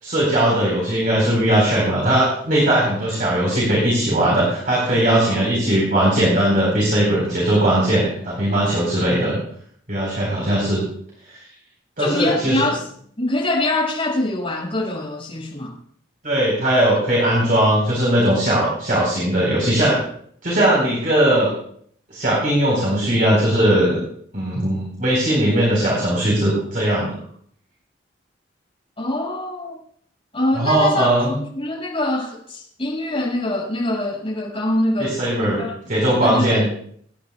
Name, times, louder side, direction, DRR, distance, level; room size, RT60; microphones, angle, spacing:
voice 1, 0.0-9.4 9.9-10.8 11.3-11.5 12.0-12.6 16.2-20.0 20.4-21.5 22.1-24.0 24.3-27.1 30.5-31.3 35.0-35.6 35.9-36.6, right 1 dB, 45° right, -4 dB, 4.3 m, -19 dB
voice 2, 5.0-5.5 12.0-12.8 13.2-15.7 29.0-29.8 30.3-31.1 31.4-35.7 36.2-36.7, left 1 dB, 30° left, -5 dB, 5.9 m, -24 dB
26.0 x 10.5 x 2.3 m, 0.62 s
head